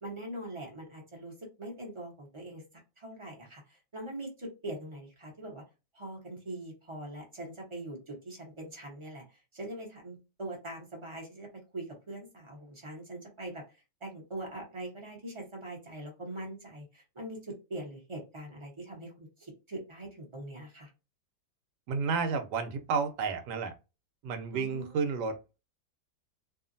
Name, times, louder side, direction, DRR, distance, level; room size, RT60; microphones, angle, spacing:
voice 1, 0.0-1.3 1.6-2.6 3.0-5.6 5.9-9.2 9.5-13.6 14.0-20.9 24.5-25.0, right 1 dB, 25° right, 0.8 m, -42 dB
voice 2, 21.9-23.7 24.2-25.6, right 5 dB, 80° right, 1.2 m, -31 dB
2.8 x 2.4 x 2.6 m
omnidirectional pair, 1.8 m